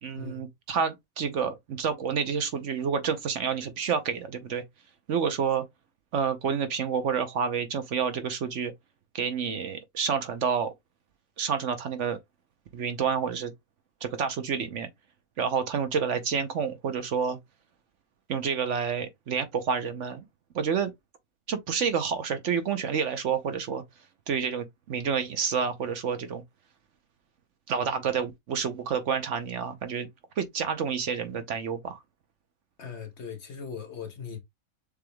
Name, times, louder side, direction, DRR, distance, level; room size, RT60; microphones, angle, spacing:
voice 1, 0.0-4.6 5.1-5.6 6.1-8.7 9.1-10.7 11.4-12.2 12.7-13.5 14.0-14.9 15.4-17.4 18.3-20.2 20.5-20.9 21.5-23.8 24.3-26.4 27.7-30.1 30.4-32.0, right 6 dB, 60° right, 1.0 m, -29 dB
voice 2, 32.8-34.4, left 6 dB, 55° left, 1.1 m, -39 dB
6.8 x 3.3 x 2.2 m
omnidirectional pair, 1.5 m